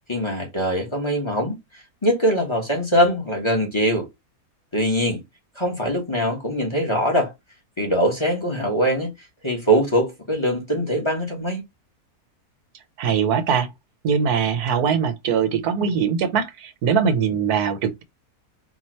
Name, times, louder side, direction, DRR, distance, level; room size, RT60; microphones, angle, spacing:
voice 1, 0.1-4.1 4.7-5.2 5.5-7.3 7.8-9.1 9.4-11.6, equal, 20° left, 1.4 m, -22 dB
voice 2, 13.0-13.7 14.0-18.0, right 7 dB, 85° right, 1.3 m, -21 dB
4.3 x 2.9 x 3.1 m
omnidirectional pair, 1.6 m